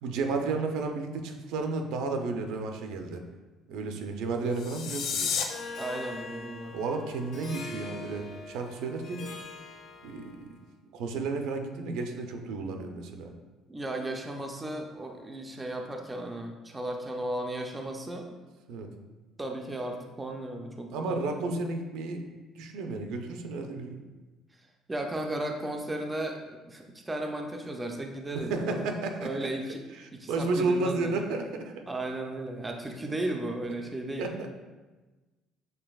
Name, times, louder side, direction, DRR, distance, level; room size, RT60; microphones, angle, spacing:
voice 1, 0.0-3.2 3.7-5.3 6.7-9.3 10.0-10.5 10.9-13.3 18.7-18.9 20.9-22.3 22.6-24.0 28.3-29.5 29.9-31.8 34.2-34.5, right 3 dB, 80° right, 4 dB, 0.5 m, -32 dB
sound 1, 4.5-5.4, left 7 dB, 65° left, 0.4 m, -31 dB
Harp, 5.5-10.5, left 3 dB, 50° left, 1.0 m, -43 dB
voice 2, 5.8-6.8 13.7-18.3 19.4-21.2 24.9-28.8 29.2-29.8 30.1-31.1 31.9-34.3, right 1 dB, 10° right, 2 dB, 0.3 m, -35 dB
6.7 x 3.3 x 2.3 m, 1.2 s
cardioid pair, 170°, 0 cm